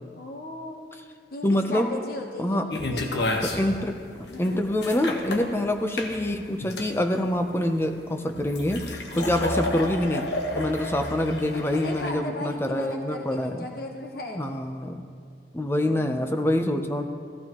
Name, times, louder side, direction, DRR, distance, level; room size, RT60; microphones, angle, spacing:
voice 1, 0.2-0.9 1.3-2.6 2.9-3.0 3.5-3.9 4.3-4.6 9.1-9.4 11.8-14.4 15.8-16.3, left 1 dB, 55° left, 1 dB, 1.0 m, -36 dB
voice 2, 1.4-1.9 2.4-2.7 3.4-10.3 10.5-13.7 14.4-15.0 15.5-17.1, left 1 dB, 15° left, 5 dB, 0.6 m, -26 dB
sound 1, 2.7-12.1, left 2 dB, 75° left, 1.1 m, -31 dB
16.0 x 14.5 x 3.0 m, 2.2 s
head